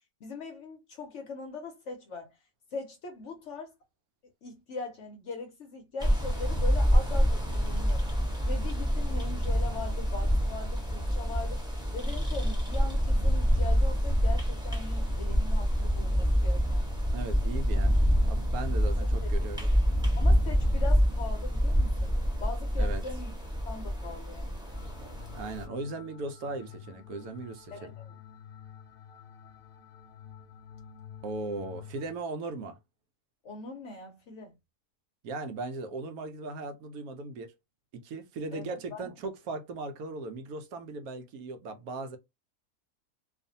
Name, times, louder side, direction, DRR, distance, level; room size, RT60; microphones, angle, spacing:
voice 1, 0.2-2.3 2.7-3.7 4.4-8.0 8.4-11.6 11.9-17.1 18.9-19.6 20.2-23.3 23.7-24.6 27.7-28.1 33.4-34.5 38.5-39.1, left 3 dB, 65° left, 0.8 m, -41 dB
sound 1, 6.0-25.7, equal, 5° right, 0.5 m, -27 dB
voice 2, 17.1-19.7 22.8-23.0 25.3-27.9 31.2-32.8 35.2-37.5 37.9-42.2, right 3 dB, 75° right, 1.0 m, -38 dB
sound 2, 24.7-32.1, left 8 dB, 85° left, 0.5 m, -49 dB
2.6 x 2.4 x 2.6 m
omnidirectional pair, 1.7 m